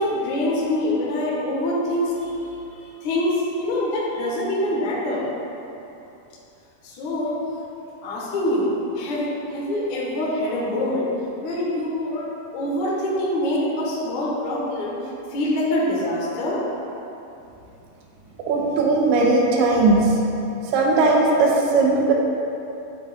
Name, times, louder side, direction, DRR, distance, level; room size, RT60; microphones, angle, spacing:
voice 1, 0.0-5.3 6.8-7.4 8.0-8.7 9.0-11.1 11.4-15.0 15.3-16.6, left 1 dB, 65° left, -5 dB, 2.0 m, -25 dB
voice 2, 18.5-20.1 20.7-22.1, right 3 dB, 85° right, -1 dB, 2.7 m, -18 dB
9.7 x 3.5 x 4.1 m, 2.9 s
omnidirectional pair, 4.5 m